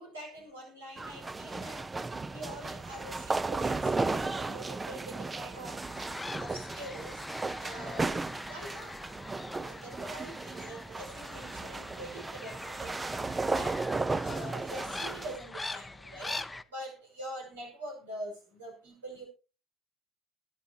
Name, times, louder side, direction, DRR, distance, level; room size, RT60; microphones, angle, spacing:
voice 1, 0.0-8.2 8.5-9.0 9.7-13.0 13.4-19.2, right 1 dB, 80° right, 0 dB, 5.9 m, -45 dB
sound 1, 1.0-15.4, right 3 dB, 20° right, 0.8 m, -35 dB
sound 2, 5.8-16.6, left 2 dB, 15° left, 0.8 m, -43 dB
21.5 x 9.2 x 2.9 m, 0.33 s
figure-of-eight pair, 55°, 0 cm